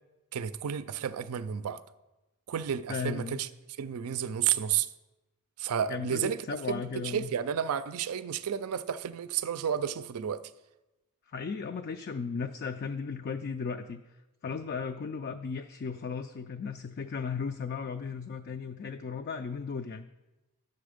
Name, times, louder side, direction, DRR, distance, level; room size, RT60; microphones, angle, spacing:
voice 1, 0.3-1.8 2.5-3.5 3.8-4.9 5.6-10.4, right 8 dB, 80° right, 0.4 m, -31 dB
voice 2, 2.9-3.4 5.9-7.3 11.3-14.0 14.4-20.1, left 5 dB, 45° left, 0.3 m, -36 dB
10.5 x 6.8 x 5.0 m
head